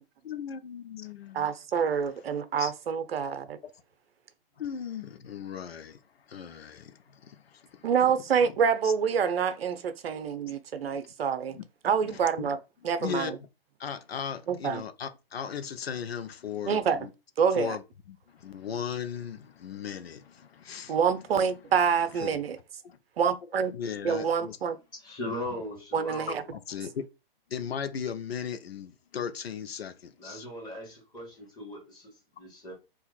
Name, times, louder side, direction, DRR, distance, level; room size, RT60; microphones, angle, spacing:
voice 1, 0.2-1.5 2.6-2.7 4.6-6.0 6.3-7.9 8.8-8.9 10.5-10.6 11.5-11.6 12.0-12.5 13.0-13.3 13.8-17.1 17.6-17.8 18.1-21.0 22.2-22.3 22.8-23.0 23.7-24.6 26.5-27.0 27.5-30.5, left 7 dB, 85° left, 0.7 m, -37 dB
voice 2, 1.3-3.6 7.8-11.6 11.8-12.6 12.8-13.4 14.5-14.8 16.7-17.0 17.4-17.8 20.9-22.6 23.2-23.7 24.0-24.8 25.9-26.4, right 7 dB, 80° right, 0.6 m, -27 dB
voice 3, 25.0-26.5 30.2-32.7, left 1 dB, 15° left, 1.4 m, -39 dB
2.8 x 2.4 x 4.0 m
hypercardioid pair, 135°, 30 cm